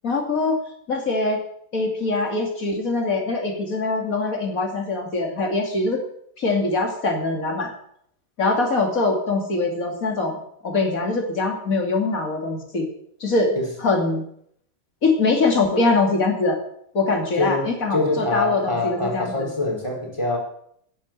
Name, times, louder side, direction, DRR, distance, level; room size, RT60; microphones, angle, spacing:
voice 1, 0.0-0.6 0.9-1.4 1.7-6.0 6.4-7.7 8.4-12.9 13.2-14.2 15.0-16.6 16.9-19.3, left 3 dB, 45° left, 2 dB, 3.1 m, -23 dB
voice 2, 17.4-20.4, left 3 dB, 15° left, -2 dB, 4.6 m, -25 dB
10.5 x 9.4 x 8.9 m, 0.68 s
omnidirectional pair, 2.1 m